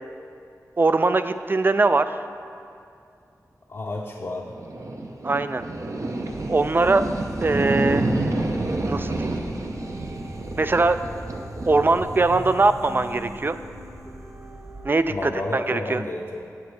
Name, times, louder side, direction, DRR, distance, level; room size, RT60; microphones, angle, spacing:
voice 1, 0.8-2.1 5.2-5.6 6.5-7.0 7.4-8.1 8.9-9.3 10.6-11.0 11.7-13.6 14.8-16.0, right 3 dB, 35° right, 11 dB, 0.3 m, -21 dB
voice 2, 3.7-4.5 15.1-16.4, left 2 dB, 50° left, -2 dB, 0.6 m, -31 dB
sound 1, 4.5-14.9, right 2 dB, 55° right, 0.7 m, -30 dB
sound 2, 6.3-14.9, right 1 dB, 15° right, 0.9 m, -41 dB
7.9 x 7.3 x 4.7 m, 2.4 s
wide cardioid pair, 80°, 6 cm